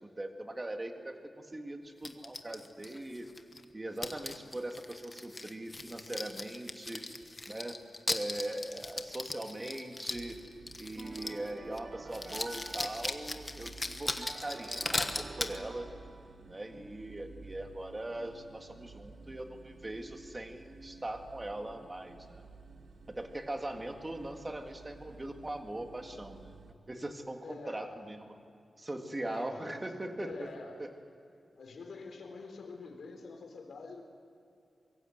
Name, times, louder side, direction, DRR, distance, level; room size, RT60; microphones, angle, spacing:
voice 1, 0.0-3.3 3.7-7.0 7.5-7.8 8.1-10.4 10.8-15.9 16.5-22.4 23.1-26.6 26.9-28.2 28.8-30.5 30.8-30.9, right 1 dB, 20° right, 5 dB, 1.9 m, -40 dB
sound 1, 2.0-3.6 4.0-11.5 11.8-11.9 12.1-15.6, left 2 dB, 20° left, 1.2 m, -38 dB
sound 2, 10.1-26.7, right 3 dB, 80° right, 1.5 m, -53 dB
sound 3, 11.0-13.6 14.2-16.7, right 3 dB, 40° right, 0.7 m, -49 dB
voice 2, 27.4-28.0 29.2-29.9 30.2-30.9 31.5-34.0, left 4 dB, 75° left, 4 dB, 3.9 m, -46 dB
24.5 x 22.5 x 7.9 m, 2.6 s
wide cardioid pair, 175°, 0 cm